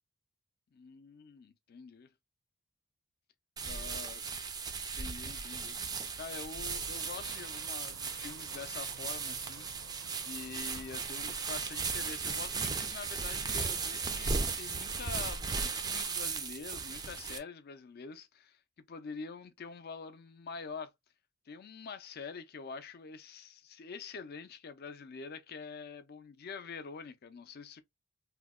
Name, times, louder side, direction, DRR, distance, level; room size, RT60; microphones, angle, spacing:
voice 1, 0.7-2.1 3.6-4.2 4.9-5.8 6.2-18.6 18.9-20.9 21.5-27.8, left 5 dB, 50° left, 0.5 m, -46 dB
sound 1, 3.6-17.4, right 5 dB, 20° right, 0.3 m, -36 dB
sound 2, 6.8-12.0, right 5 dB, 75° right, 0.5 m, -54 dB
2.8 x 2.1 x 3.5 m
head